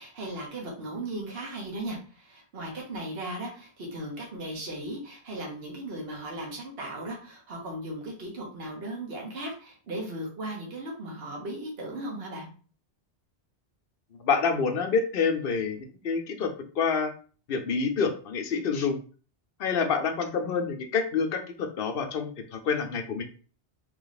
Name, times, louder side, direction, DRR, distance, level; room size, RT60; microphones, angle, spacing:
voice 1, 0.0-12.5, right 1 dB, 65° right, -1 dB, 1.3 m, -37 dB
voice 2, 14.2-17.1 17.5-19.0 19.6-23.2, left 5 dB, 60° left, 5 dB, 0.8 m, -27 dB
3.1 x 3.1 x 4.0 m, 0.39 s
omnidirectional pair, 1.1 m